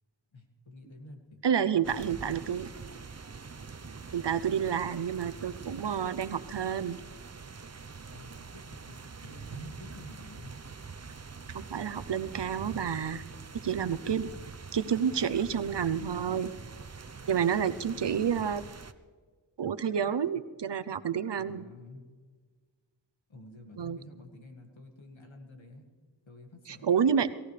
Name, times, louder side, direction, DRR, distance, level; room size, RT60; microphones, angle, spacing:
voice 1, 0.3-1.4 8.1-10.5 21.4-22.1 23.3-25.8 26.3-26.9, left 2 dB, 80° left, 3 dB, 2.2 m, -50 dB
voice 2, 1.4-2.9 4.1-7.0 11.5-13.2 13.5-14.3 14.7-16.5 17.3-18.6 19.6-21.6 23.8-24.0 26.7-27.3, right 7 dB, 65° right, 12 dB, 0.7 m, -29 dB
sound 1, 1.8-18.9, right 5 dB, 35° right, 0.8 m, -45 dB
sound 2, 9.4-11.9, right 5 dB, 85° right, 1.0 m, -51 dB
22.5 x 15.5 x 3.3 m, 1.5 s
cardioid pair, 40°, 46 cm